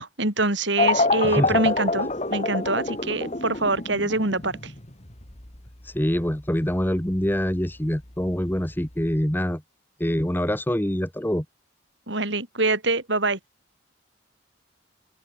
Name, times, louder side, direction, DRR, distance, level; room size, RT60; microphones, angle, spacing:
voice 1, 0.0-4.7 12.1-13.4, right 2 dB, 65° right, 4.8 m, -25 dB
sound 1, 0.8-9.2, left 3 dB, 35° left, 2.6 m, -27 dB
voice 2, 1.2-1.6 5.8-9.6 10.0-11.4, equal, 10° left, 1.2 m, -25 dB
open air
head